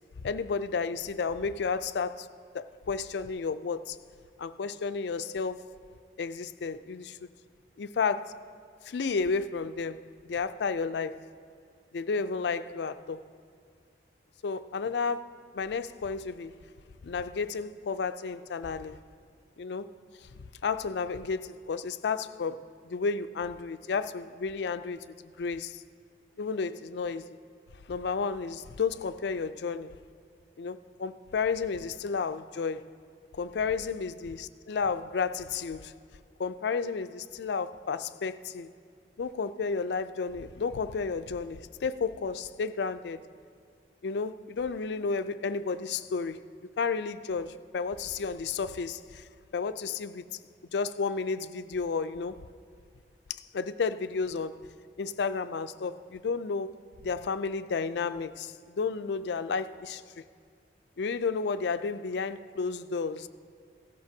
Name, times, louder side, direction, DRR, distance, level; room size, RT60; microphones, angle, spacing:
voice 1, 0.2-2.3 2.5-4.0 4.4-5.7 6.2-7.2 7.8-8.4 8.8-11.3 11.9-13.3 14.4-16.5 17.0-19.0 19.6-19.9 20.2-25.8 26.4-27.3 27.9-30.0 30.6-32.9 33.3-36.0 36.4-38.7 39.2-43.2 44.0-46.4 46.8-49.3 49.5-50.2 50.7-52.5 53.3-54.7 55.0-60.2 61.0-63.3, left 5 dB, 75° left, 0.4 m, -32 dB
16.0 x 13.0 x 2.7 m
head